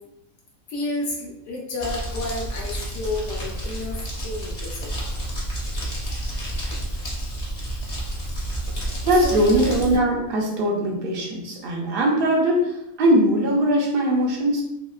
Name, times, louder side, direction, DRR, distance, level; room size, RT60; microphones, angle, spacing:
voice 1, 0.7-4.9 9.1-9.6, left 2 dB, 70° left, -2 dB, 0.9 m, -31 dB
Crumpling crinkling, 1.8-10.0, right 1 dB, 40° left, 0.7 m, -30 dB
voice 2, 9.0-14.6, right 1 dB, 65° right, -1 dB, 0.6 m, -21 dB
2.8 x 2.7 x 2.3 m, 0.86 s
omnidirectional pair, 1.4 m